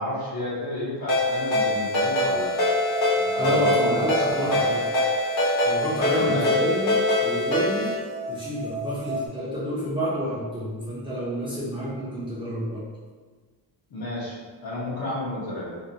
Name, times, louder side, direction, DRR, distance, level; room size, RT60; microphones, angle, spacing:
voice 1, 0.0-2.5 3.2-4.6 6.1-6.6 13.9-15.8, left 1 dB, 50° left, -6 dB, 0.9 m, -31 dB
Ringtone, 1.1-8.0, left 1 dB, 90° left, 1.1 m, -23 dB
sound 1, 2.3-9.3, right 1 dB, 85° right, 0.6 m, -34 dB
voice 2, 3.4-4.8 5.6-7.9 8.3-12.8, equal, 10° right, -10 dB, 0.6 m, -29 dB
2.8 x 2.2 x 2.7 m, 1.4 s
wide cardioid pair, 155°, 45 cm